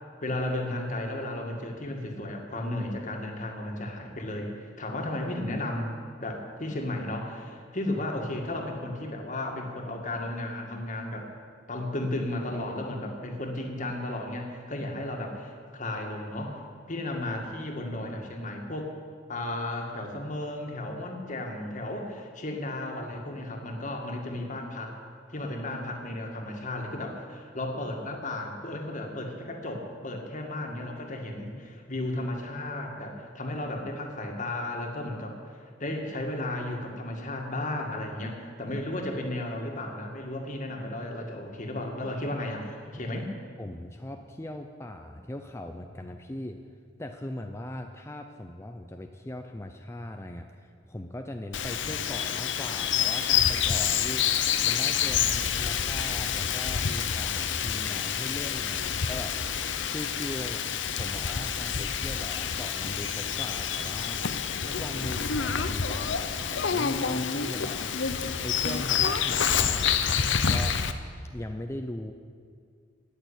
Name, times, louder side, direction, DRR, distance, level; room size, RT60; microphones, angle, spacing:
voice 1, 0.2-11.3 11.7-16.6 16.9-18.9 19.3-24.9 25.3-35.5 35.8-43.3, left 1 dB, 40° left, 2 dB, 2.0 m, -34 dB
voice 2, 43.6-46.6 47.0-54.2 54.6-59.4 59.9-60.6 60.9-64.3 64.6-67.9 68.4-70.8 71.3-72.1, left 1 dB, 15° left, 5 dB, 0.6 m, -39 dB
Bird vocalization bird call bird song, 51.5-70.9, left 7 dB, 70° left, 0.8 m, -28 dB
17.0 x 6.8 x 10.0 m, 2.1 s
head